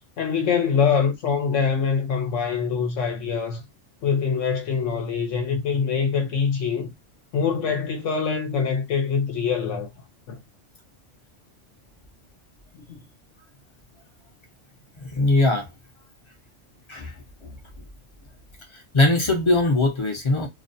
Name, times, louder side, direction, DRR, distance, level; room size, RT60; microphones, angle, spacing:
voice 1, 0.2-3.6 4.0-6.9 7.3-9.9 10.3-10.4 12.7-13.0, left 6 dB, 80° left, 1.0 m, -24 dB
voice 2, 15.0-15.7 16.9-17.5 18.7-20.5, left 2 dB, 35° left, 0.5 m, -21 dB
2.5 x 2.1 x 2.6 m
omnidirectional pair, 1.3 m